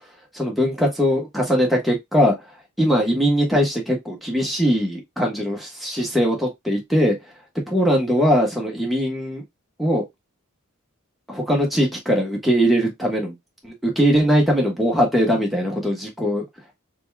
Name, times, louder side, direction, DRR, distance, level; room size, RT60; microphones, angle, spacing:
voice 1, 0.3-2.5 2.8-7.2 7.7-9.4 9.8-10.0 11.3-13.3 13.6-16.5, equal, ahead, 1.4 m, -20 dB
4.0 x 3.6 x 2.2 m
head